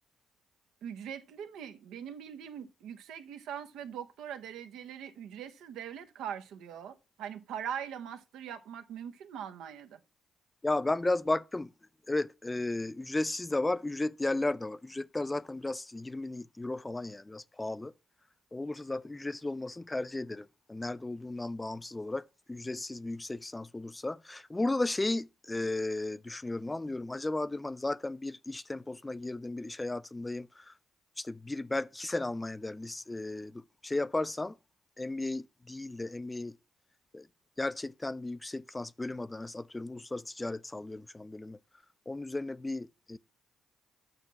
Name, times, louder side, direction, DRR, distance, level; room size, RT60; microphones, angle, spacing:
voice 1, 0.8-10.0, right 9 dB, 85° right, 0.9 m, -42 dB
voice 2, 10.6-11.7 12.1-17.9 18.5-30.7 31.2-34.5 35.0-36.6 37.1-37.3 37.6-41.6 42.1-43.2, left 2 dB, 15° left, 0.4 m, -34 dB
6.6 x 6.1 x 5.7 m
cardioid pair, 90°, 0 cm